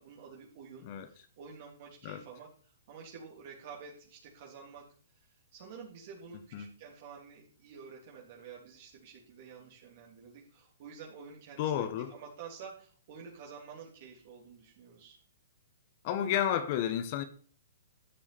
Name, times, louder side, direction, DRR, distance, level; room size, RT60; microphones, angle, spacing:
voice 1, 0.0-15.2, right 6 dB, 50° right, 3.3 m, -50 dB
voice 2, 11.6-12.1 16.0-17.2, left 10 dB, 45° left, 1.4 m, -31 dB
13.0 x 8.5 x 4.3 m
hypercardioid pair, 140°, 0 cm